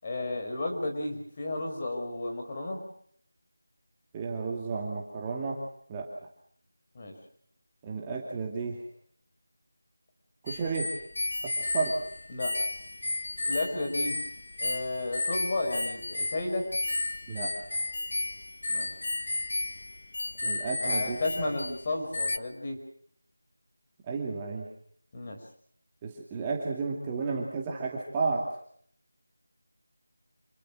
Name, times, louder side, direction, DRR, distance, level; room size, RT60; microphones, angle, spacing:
voice 1, 0.0-2.8 6.9-7.1 12.3-12.6 13.4-14.2 14.6-16.7 18.7-18.9 20.8-22.8 25.1-25.4, left 2 dB, 25° left, 2 dB, 5.7 m, -33 dB
voice 2, 4.1-5.6 5.9-6.1 7.8-8.8 10.4-10.9 11.4-12.0 17.3-17.8 20.4-21.5 24.0-24.7 26.0-28.5, right 4 dB, 15° right, -2 dB, 2.5 m, -32 dB
sound 1, 10.5-21.9 22.1-22.4, left 2 dB, 55° left, 1.2 m, -33 dB
27.5 x 21.0 x 6.4 m, 0.63 s
figure-of-eight pair, 175°, 0 cm